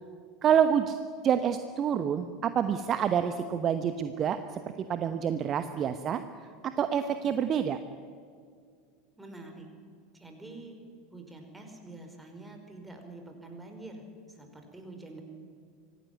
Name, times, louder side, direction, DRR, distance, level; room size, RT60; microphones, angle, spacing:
voice 1, 0.4-1.0 1.2-4.6 4.9-6.2 6.6-7.8, right 8 dB, 35° right, 10 dB, 1.0 m, -27 dB
voice 2, 9.2-9.7 10.1-10.8 11.1-14.0 14.3-15.2, right 2 dB, 10° right, 4 dB, 5.0 m, -46 dB
25.0 x 17.5 x 9.5 m, 2.2 s
figure-of-eight pair, 80°, 0 cm